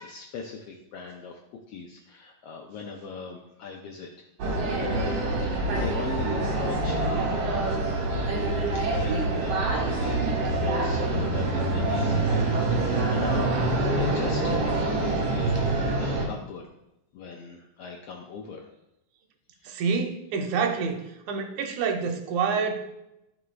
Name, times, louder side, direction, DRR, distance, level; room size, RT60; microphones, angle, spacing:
voice 1, 0.0-1.4 1.7-4.3 4.8-7.3 7.6-13.5 13.9-16.7 17.1-18.7 19.6-19.7, left 5 dB, 75° left, 1 dB, 1.4 m, -39 dB
sound 1, 4.4-16.3, right 2 dB, 60° right, 2.5 m, -26 dB
voice 2, 19.7-21.0 21.3-22.7, right 5 dB, 85° right, 5 dB, 2.2 m, -27 dB
12.5 x 5.1 x 2.3 m, 0.88 s
omnidirectional pair, 3.4 m